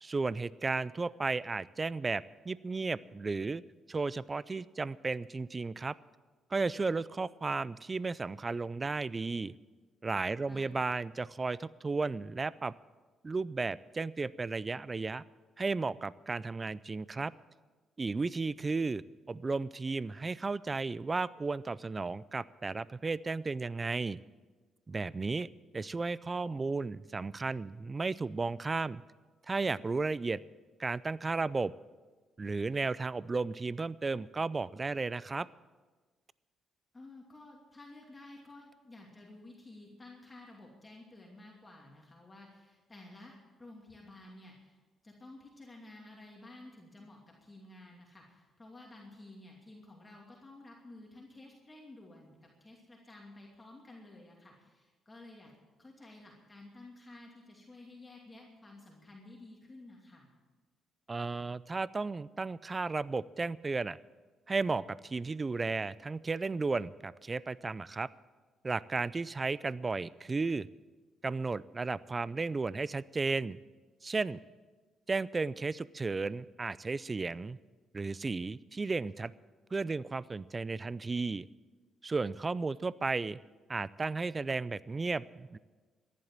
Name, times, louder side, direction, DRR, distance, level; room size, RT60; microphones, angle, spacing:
voice 1, 0.0-3.6 3.9-5.9 6.5-9.5 10.0-12.7 13.2-15.2 15.6-17.3 18.0-24.2 24.9-25.5 25.7-29.0 29.5-30.4 30.8-31.7 32.4-35.5 61.1-64.0 64.5-68.1 68.6-70.7 71.2-73.6 74.0-74.4 75.1-77.6 77.9-79.3 79.7-81.5 82.0-83.4 83.7-85.6, right 3 dB, 30° right, 20 dB, 0.4 m, -34 dB
voice 2, 36.9-44.8 45.0-55.5 55.8-60.3, left 2 dB, 20° left, -2 dB, 2.7 m, -53 dB
14.5 x 11.0 x 7.4 m, 1.3 s
cardioid pair, 90°, 0 cm